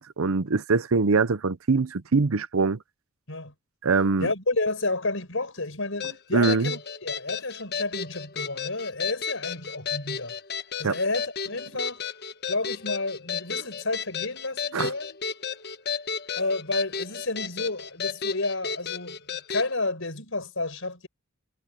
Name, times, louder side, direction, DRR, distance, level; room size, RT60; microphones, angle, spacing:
voice 1, 0.0-2.8 3.8-4.3 6.3-6.7 10.8-11.0 14.7-14.9, right 4 dB, 90° right, 0.7 m, -23 dB
voice 2, 4.2-10.3 10.8-12.0 12.5-15.2 16.3-19.2 19.5-21.1, left 2 dB, 70° left, 6.8 m, -30 dB
sound 1, 6.0-19.7, left 6 dB, 55° left, 1.2 m, -33 dB
head